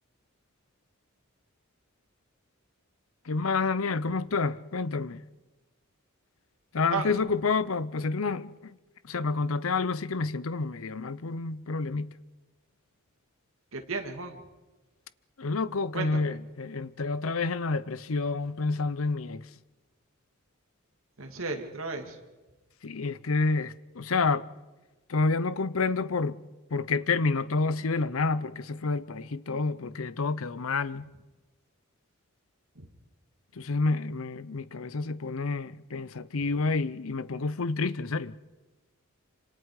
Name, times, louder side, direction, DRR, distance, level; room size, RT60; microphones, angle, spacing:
voice 1, 3.3-5.2 6.7-8.8 9.0-12.1 15.4-19.4 22.8-24.5 25.1-26.4 26.7-31.1 33.6-38.3, left 3 dB, 70° left, 0.7 m, -29 dB
voice 2, 13.7-14.4 15.9-16.3 21.2-22.2 32.8-32.9, right 4 dB, 70° right, 2.3 m, -34 dB
27.5 x 26.0 x 4.9 m
head